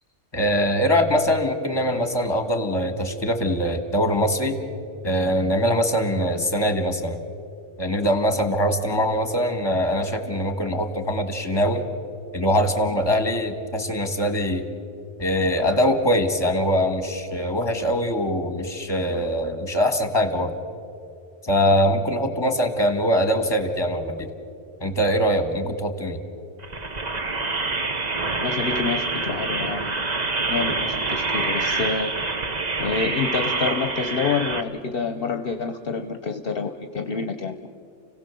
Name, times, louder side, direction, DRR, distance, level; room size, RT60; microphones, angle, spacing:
voice 1, 0.3-4.6 5.0-7.2 7.8-11.8 12.3-14.6 15.2-20.5 21.4-24.3 24.8-26.2, equal, 20° left, 7 dB, 1.6 m, -22 dB
sound 1, 26.6-34.6, right 3 dB, 40° right, 1.1 m, -26 dB
voice 2, 28.3-30.1 30.5-32.1 32.8-37.7, left 5 dB, 55° left, 7 dB, 1.0 m, -28 dB
30.0 x 16.5 x 7.0 m, 2.4 s
omnidirectional pair, 1.2 m